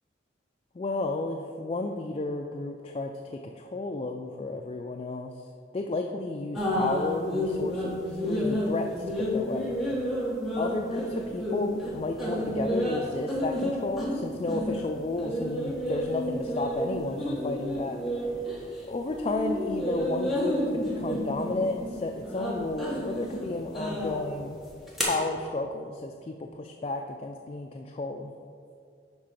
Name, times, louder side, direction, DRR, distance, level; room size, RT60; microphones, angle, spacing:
voice 1, 0.7-5.4 5.7-9.8 10.6-18.5 18.9-24.6 25.0-28.3, left 2 dB, 30° left, 3 dB, 0.3 m, -32 dB
sound 1, 6.5-18.8 19.1-25.0, equal, ahead, 1.4 m, -30 dB
9.9 x 3.8 x 5.9 m, 2.3 s
head